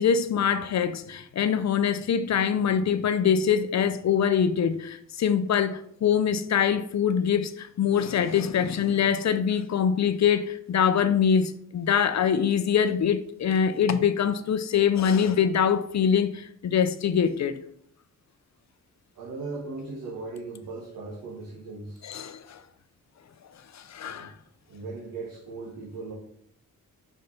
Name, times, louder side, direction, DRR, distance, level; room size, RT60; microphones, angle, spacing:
voice 1, 0.0-17.6 22.0-22.6 23.7-24.3, left 7 dB, 55° left, 0.6 m, -24 dB
voice 2, 19.1-22.0 24.0-24.3 24.7-26.1, right 3 dB, 85° right, 1.8 m, -38 dB
5.4 x 5.3 x 5.8 m
wide cardioid pair, 150°, 33 cm